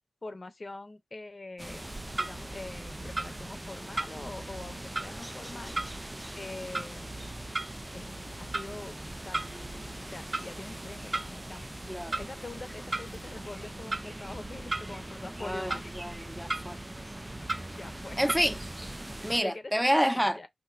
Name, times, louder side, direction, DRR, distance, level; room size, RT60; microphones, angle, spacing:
voice 1, 0.2-1.9 2.1-5.8 6.4-7.2 7.9-9.5 10.1-11.7 12.2-15.9 17.7-18.2 19.4-20.5, left 2 dB, 50° left, 0.8 m, -44 dB
sound 1, 1.6-19.4, right 1 dB, 20° right, 0.3 m, -42 dB
Clock, 1.8-19.0, right 2 dB, 45° right, 0.7 m, -39 dB
voice 2, 15.4-16.8 18.2-18.6 19.2-20.4, equal, ahead, 0.7 m, -28 dB
4.5 x 2.8 x 2.5 m
wide cardioid pair, 60°, 0 cm